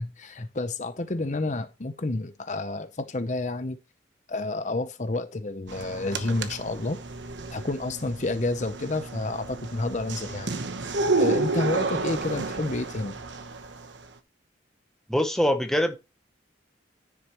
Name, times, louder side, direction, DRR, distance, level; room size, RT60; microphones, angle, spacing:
voice 1, 0.0-3.8 4.3-7.0 7.5-10.5 11.2-13.2, left 2 dB, 40° left, 0.7 m, -30 dB
sound 1, 5.7-14.0, right 3 dB, 75° right, 1.0 m, -31 dB
voice 2, 15.1-16.0, equal, ahead, 0.9 m, -23 dB
10.0 x 7.5 x 3.0 m
head